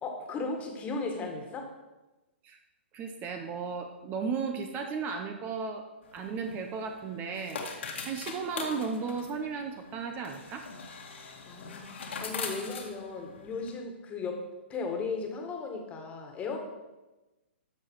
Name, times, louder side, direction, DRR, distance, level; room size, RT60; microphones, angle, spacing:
voice 1, 0.0-1.7 11.5-16.6, left 4 dB, 20° left, 3 dB, 1.9 m, -36 dB
voice 2, 2.9-5.8 6.1-10.7, right 5 dB, 25° right, 5 dB, 1.0 m, -35 dB
sound 1, 6.0-13.7, left 4 dB, 75° left, 2.1 m, -42 dB
13.5 x 5.8 x 4.8 m, 1.1 s
hypercardioid pair, 130°, 6 cm